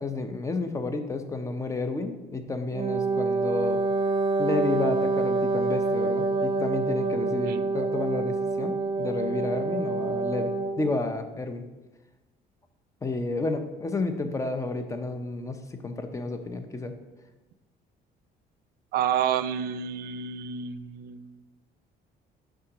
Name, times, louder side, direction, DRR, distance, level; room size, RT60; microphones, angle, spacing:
voice 1, 0.0-3.8 4.4-11.6 13.0-15.6 15.8-16.9, left 3 dB, 20° left, 8 dB, 0.6 m, -31 dB
Wind instrument woodwind instrument, 2.7-10.9, right 3 dB, 30° right, 0.7 m, -27 dB
voice 2, 18.9-21.4, right 9 dB, 65° right, 13 dB, 0.4 m, -29 dB
5.6 x 3.7 x 5.0 m, 1.1 s
cardioid pair, 110°, 17 cm